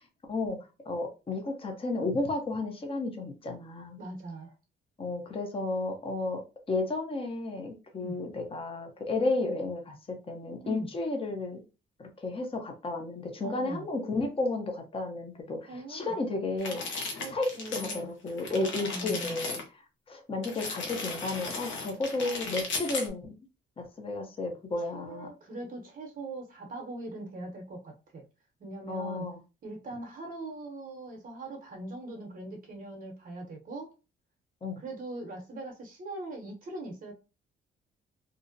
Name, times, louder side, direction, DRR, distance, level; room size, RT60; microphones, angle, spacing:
voice 1, 0.9-4.0 5.0-11.6 12.0-16.8 17.3-19.6 20.1-23.3 23.8-25.3 28.9-29.4 34.6-34.8, left 2 dB, 30° left, 0.7 m, -33 dB
voice 2, 4.0-4.5 8.0-8.2 10.6-10.9 13.4-13.9 15.7-16.1 17.2-18.1 18.5-19.4 24.9-28.2 28.6-29.3 29.6-33.9 34.8-37.1, right 2 dB, 45° right, 0.7 m, -41 dB
sound 1, 16.6-18.0 18.3-19.6 20.4-23.1, left 3 dB, 75° left, 0.8 m, -36 dB
2.5 x 2.0 x 2.5 m
cardioid pair, 90°, 20 cm